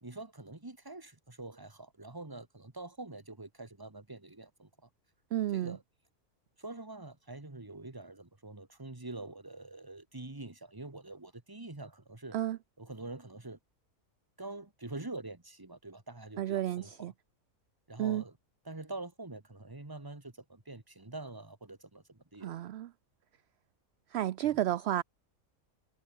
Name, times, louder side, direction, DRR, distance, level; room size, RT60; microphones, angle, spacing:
voice 1, 0.0-4.7 5.5-5.8 6.6-12.4 12.8-13.6 14.4-17.1 17.9-18.4 18.7-22.5 24.4-24.6, right 2 dB, 15° right, 1.7 m, -45 dB
voice 2, 5.3-5.8 12.3-12.6 16.4-17.1 18.0-18.2 22.4-22.9 24.1-25.0, right 13 dB, 65° right, 0.7 m, -32 dB
omnidirectional pair, 1.5 m